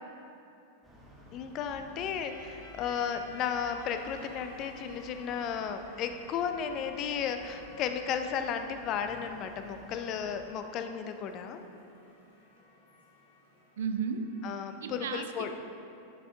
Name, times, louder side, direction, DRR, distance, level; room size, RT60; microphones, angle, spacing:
sound 1, 0.8-10.4, equal, 10° right, 1.9 m, -53 dB
voice 1, 1.3-11.6 14.4-15.5, left 7 dB, 35° left, 7 dB, 0.5 m, -34 dB
sound 2, 2.2-14.7, equal, 65° left, 1.5 m, -55 dB
voice 2, 13.8-14.3 14.8-15.5, right 6 dB, 60° right, 7 dB, 0.5 m, -34 dB
11.0 x 6.1 x 3.4 m, 2.8 s
figure-of-eight pair, 90°, 0 cm